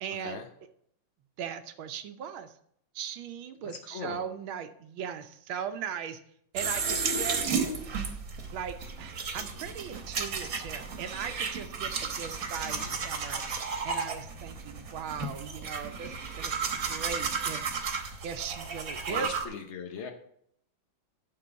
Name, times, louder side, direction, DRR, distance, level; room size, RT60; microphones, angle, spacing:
voice 1, 0.0-0.4 1.4-2.5 2.9-6.2 6.5-7.6 8.5-13.4 13.8-17.7 18.2-19.3, right 8 dB, 75° right, 9 dB, 1.5 m, -39 dB
voice 2, 3.8-4.2 12.6-13.0 19.1-20.1, left 6 dB, 70° left, 4 dB, 0.6 m, -40 dB
sound 1, 6.6-19.5, right 5 dB, 50° right, 1.3 m, -33 dB
11.5 x 3.8 x 6.7 m, 0.69 s
omnidirectional pair, 2.3 m